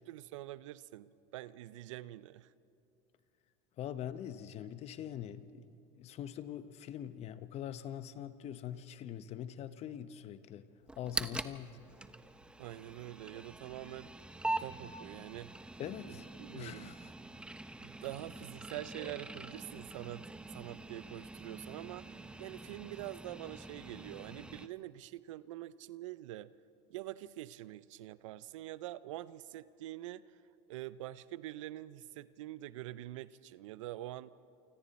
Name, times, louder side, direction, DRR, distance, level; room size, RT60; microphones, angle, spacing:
voice 1, 0.1-2.5 12.6-14.1 14.5-15.6 16.0-16.9 17.8-20.2 20.5-26.5 26.9-30.4 30.7-34.3, right 15 dB, 85° right, 17 dB, 0.6 m, -45 dB
voice 2, 3.8-5.7 5.9-10.7 11.0-11.8 15.8-16.3 16.5-17.1, left 10 dB, 45° left, 12 dB, 0.9 m, -43 dB
sound 1, 10.9-24.7, right 2 dB, 5° right, 0.7 m, -44 dB
28.5 x 25.0 x 4.2 m, 2.7 s
supercardioid pair, 115°, 16 cm